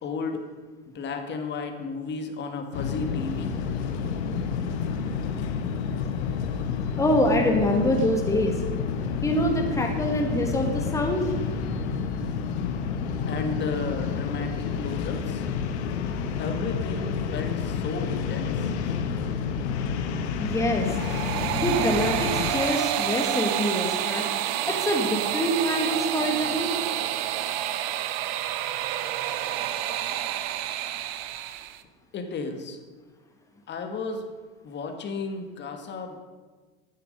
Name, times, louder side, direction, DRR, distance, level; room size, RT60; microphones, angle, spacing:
voice 1, 0.0-0.4 0.9-3.5 13.3-15.5 16.4-18.7 32.1-32.8 33.7-34.2 34.6-36.2, left 4 dB, 35° left, 5 dB, 1.6 m, -33 dB
sound 1, 2.7-22.5, left 6 dB, 80° left, 1.1 m, -29 dB
voice 2, 7.0-8.6 9.2-11.3 20.4-20.9 21.5-24.3 24.7-26.7, equal, 10° left, 2 dB, 1.4 m, -25 dB
sound 2, 20.7-31.8, right 12 dB, 70° right, 0.8 m, -29 dB
9.9 x 8.2 x 5.3 m, 1.4 s
supercardioid pair, 115°, 33 cm